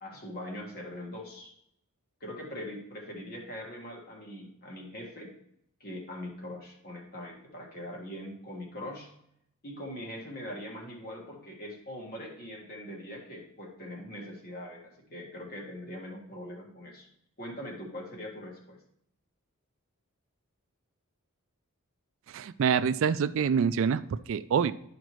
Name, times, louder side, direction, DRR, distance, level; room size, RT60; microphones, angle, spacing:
voice 1, 0.0-1.5 2.2-5.3 5.8-9.1 9.6-17.1 17.4-18.8, left 1 dB, 45° left, -1 dB, 1.8 m, -42 dB
voice 2, 22.3-24.7, right 7 dB, 60° right, 14 dB, 0.3 m, -26 dB
11.5 x 5.0 x 3.1 m, 0.74 s
head